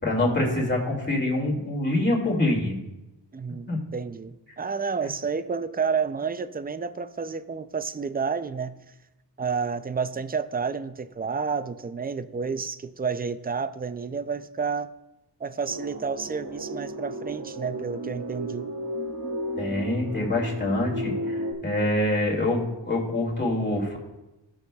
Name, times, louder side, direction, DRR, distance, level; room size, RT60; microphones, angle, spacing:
voice 1, 0.0-2.8 3.7-3.8 19.6-24.0, left 1 dB, 25° left, -2 dB, 2.3 m, -25 dB
voice 2, 3.3-8.8 9.4-14.9 15.4-18.7, right 5 dB, 25° right, 12 dB, 0.3 m, -30 dB
sound 1, 15.7-21.5, right 1 dB, 55° right, 1.4 m, -33 dB
16.0 x 6.3 x 2.3 m, 0.98 s
wide cardioid pair, 105°, 44 cm